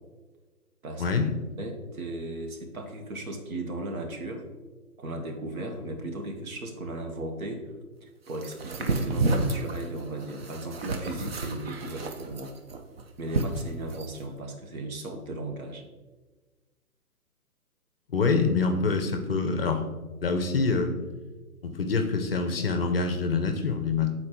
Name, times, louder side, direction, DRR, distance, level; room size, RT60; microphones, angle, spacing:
voice 1, 1.0-1.3 18.1-19.8 20.2-20.9 21.6-24.1, left 4 dB, 40° left, 6 dB, 0.6 m, -25 dB
voice 2, 1.6-4.4 5.0-7.7 8.0-12.5 13.2-15.8, right 1 dB, 65° right, 3 dB, 1.3 m, -36 dB
sound 1, 8.4-14.2, right 2 dB, 40° right, 0.5 m, -30 dB
8.3 x 4.2 x 3.0 m, 1.3 s
hypercardioid pair, 145°, 46 cm